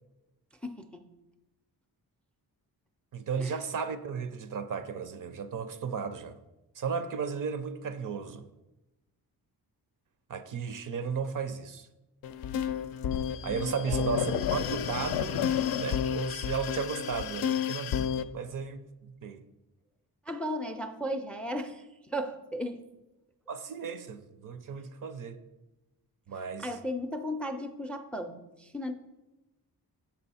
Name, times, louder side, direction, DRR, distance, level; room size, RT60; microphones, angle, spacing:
voice 1, 0.6-1.1 3.4-3.6 13.9-14.1 20.2-22.8 26.3-28.9, equal, 5° left, 8 dB, 0.4 m, -36 dB
voice 2, 3.1-6.4 6.7-8.5 10.3-11.9 13.4-19.4 23.5-25.4 26.3-26.7, right 6 dB, 55° right, 11 dB, 0.6 m, -35 dB
sound 1, 12.2-18.2, left 8 dB, 70° left, 0.5 m, -31 dB
7.4 x 5.5 x 4.2 m, 1.0 s
wide cardioid pair, 115°, 38 cm